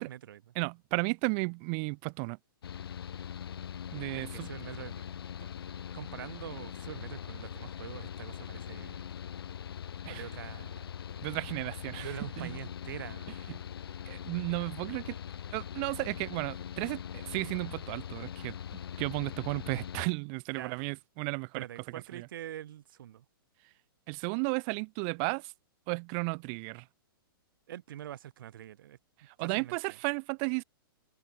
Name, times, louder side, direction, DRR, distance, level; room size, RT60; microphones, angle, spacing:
voice 1, 0.0-0.4 4.1-5.0 5.9-9.1 10.1-10.9 12.0-13.3 20.6-20.8 21.5-23.2 27.7-29.0 29.4-29.8, right 11 dB, 65° right, 3.6 m, -44 dB
voice 2, 0.5-2.4 3.9-4.5 10.0-10.3 11.2-12.6 13.5-13.6 14.1-15.2 15.5-18.6 19.0-21.7 22.1-22.3 24.1-25.5 25.9-26.9 29.2-30.6, right 40 dB or more, 35° right, 0.6 m, -34 dB
Mechanical fan, 2.6-20.1, left 9 dB, 80° left, 1.0 m, -42 dB
open air
hypercardioid pair, 140°, 12 cm